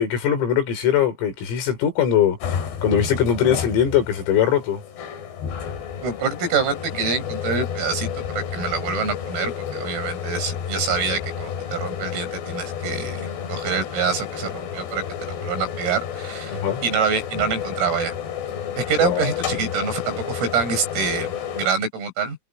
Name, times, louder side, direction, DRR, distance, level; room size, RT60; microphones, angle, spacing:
voice 1, 0.0-4.8 16.5-16.8 19.0-19.3, left 9 dB, 80° left, 7.0 m, -21 dB
sound 1, 2.4-21.7, left 8 dB, 55° left, 5.0 m, -31 dB
voice 2, 6.0-18.1 18.8-22.4, right 5 dB, 90° right, 10.0 m, -26 dB
omnidirectional pair, 5.9 m